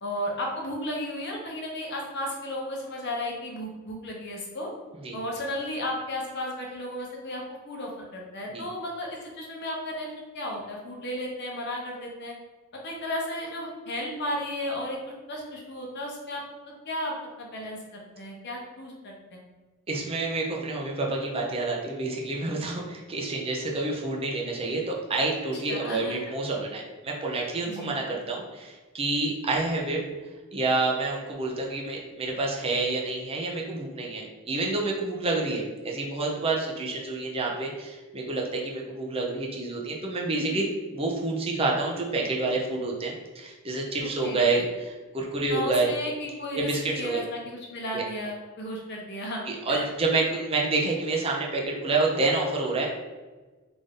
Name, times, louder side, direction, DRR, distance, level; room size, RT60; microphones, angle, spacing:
voice 1, 0.0-4.7 5.1-12.3 12.8-15.0 15.3-16.4 16.9-19.4 25.7-26.2 27.6-27.9 40.3-40.6 44.2-44.4 45.5-49.8, left 1 dB, 50° left, -1 dB, 0.8 m, -34 dB
voice 2, 19.9-30.0 30.5-40.6 40.9-45.9 46.5-47.2 47.9-48.0 49.5-52.9, right 3 dB, 25° right, -1 dB, 0.5 m, -28 dB
3.4 x 2.6 x 3.6 m, 1.3 s
head